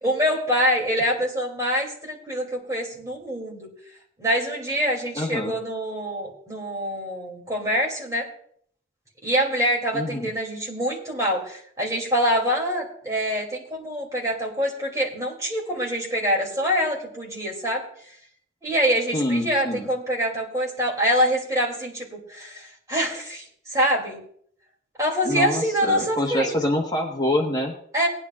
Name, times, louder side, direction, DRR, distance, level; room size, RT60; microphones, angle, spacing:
voice 1, 0.0-3.7 4.2-8.3 9.2-17.8 18.6-24.2 25.0-26.5 27.9-28.1, equal, 15° right, -2 dB, 2.6 m, -25 dB
voice 2, 5.1-5.5 9.9-10.3 19.1-19.9 25.2-27.7, left 1 dB, 20° left, 0 dB, 1.3 m, -25 dB
19.5 x 9.9 x 2.4 m, 0.64 s
head